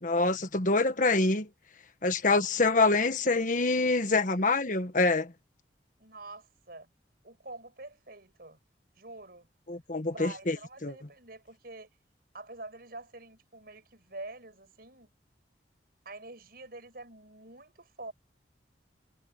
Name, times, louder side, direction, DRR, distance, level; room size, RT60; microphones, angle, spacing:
voice 1, 0.0-1.5 2.0-5.3 9.7-10.6 10.8-10.9, left 3 dB, 45° left, 1.5 m, -26 dB
voice 2, 6.0-6.9 7.2-8.6 9.0-9.5 10.0-11.9 12.3-15.1 16.0-18.1, right 2 dB, 55° right, 6.8 m, -46 dB
head